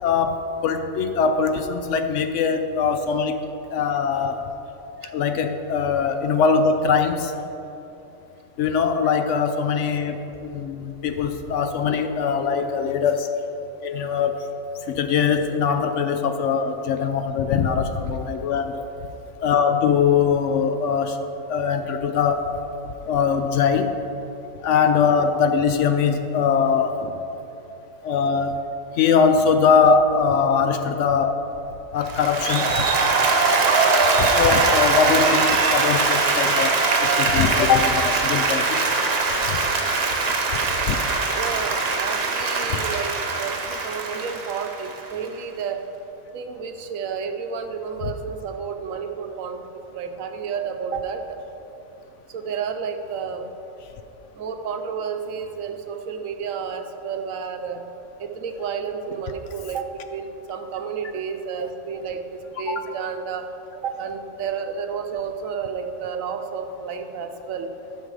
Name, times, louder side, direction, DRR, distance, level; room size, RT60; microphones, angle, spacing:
voice 1, 0.0-3.4 3.7-4.4 5.1-7.3 8.6-13.3 13.8-14.5 14.9-18.9 19.4-21.2 21.5-22.5 23.0-23.9 24.6-27.0 28.0-28.6 29.0-31.3 31.9-32.7 34.2-38.8 39.5-39.6 40.9-41.0 42.7-42.8 62.7-62.8, left 6 dB, 70° left, 8 dB, 0.8 m, -21 dB
Applause, 32.1-45.2, right 3 dB, 50° right, 1.1 m, -21 dB
voice 2, 41.3-45.8 46.3-49.6 49.9-51.4 52.3-53.5 54.4-57.8 58.2-63.5 63.8-67.7, right 6 dB, 80° right, 6 dB, 1.1 m, -31 dB
11.5 x 5.7 x 4.8 m, 3.0 s
omnidirectional pair, 1.4 m